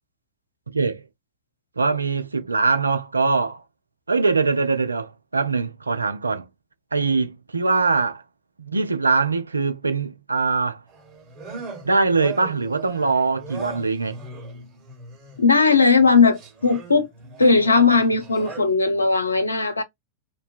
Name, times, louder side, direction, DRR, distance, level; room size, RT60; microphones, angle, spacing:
voice 1, 0.7-1.0 1.8-3.6 4.1-6.5 6.9-8.2 8.6-10.8 11.8-14.2, right 4 dB, 80° right, 0.3 m, -22 dB
sound 1, 10.9-15.5 16.0-18.6, right 3 dB, 30° right, 1.1 m, -39 dB
voice 2, 15.4-17.1 17.4-19.8, left 4 dB, 80° left, 0.5 m, -18 dB
2.5 x 2.1 x 2.3 m
figure-of-eight pair, 90°, 0 cm